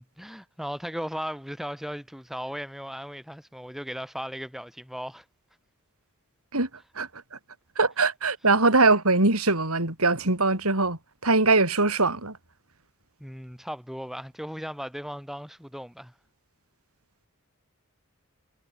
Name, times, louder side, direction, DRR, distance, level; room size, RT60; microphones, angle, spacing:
voice 1, 0.0-5.2 13.2-16.1, equal, ahead, 4.2 m, -37 dB
voice 2, 6.9-7.4 7.8-12.4, right 3 dB, 80° right, 4.9 m, -22 dB
head